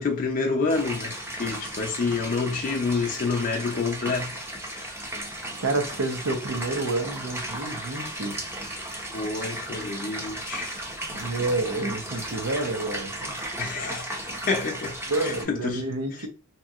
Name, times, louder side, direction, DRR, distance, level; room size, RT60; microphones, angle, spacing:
voice 1, 0.0-4.4 4.7-4.8 9.1-10.8 13.6-14.2 14.5-15.8, left 4 dB, 40° left, 0.4 m, -28 dB
sound 1, 0.7-15.4, right 1 dB, 10° right, 0.6 m, -35 dB
voice 2, 5.6-8.4 11.1-13.4 15.0-16.3, right 2 dB, 75° right, 0.7 m, -29 dB
2.9 x 2.6 x 2.3 m
head